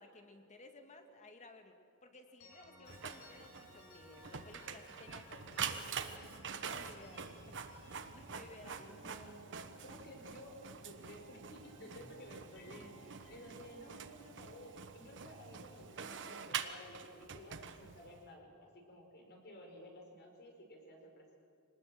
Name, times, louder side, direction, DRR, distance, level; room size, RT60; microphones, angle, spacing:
voice 1, 0.0-1.8 2.0-6.3 6.6-7.6 8.1-9.0, left 2 dB, 35° left, 5 dB, 2.1 m, -57 dB
sound 1, 2.4-11.1 11.4-15.5, equal, 65° left, 6.0 m, -60 dB
Printer, 2.9-18.2, right 6 dB, 55° right, 1.3 m, -46 dB
voice 2, 8.8-21.3, equal, 50° left, 2 dB, 5.2 m, -54 dB
25.5 x 19.5 x 7.7 m, 2.5 s
head